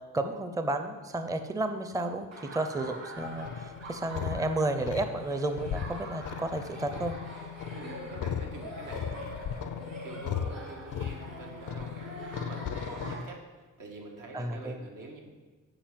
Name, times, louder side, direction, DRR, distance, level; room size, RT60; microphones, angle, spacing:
voice 1, 0.1-7.2 13.1-13.2 14.3-14.8, right 2 dB, 10° right, 8 dB, 0.5 m, -32 dB
Laughter, 2.3-13.2, right 1 dB, 55° right, 2.4 m, -44 dB
sound 1, 3.2-13.1, left 8 dB, 80° left, 0.5 m, -37 dB
voice 2, 7.7-13.5 13.8-15.2, right 3 dB, 85° right, 0 dB, 1.7 m, -46 dB
8.9 x 5.5 x 7.5 m, 1.3 s
wide cardioid pair, 150°, 31 cm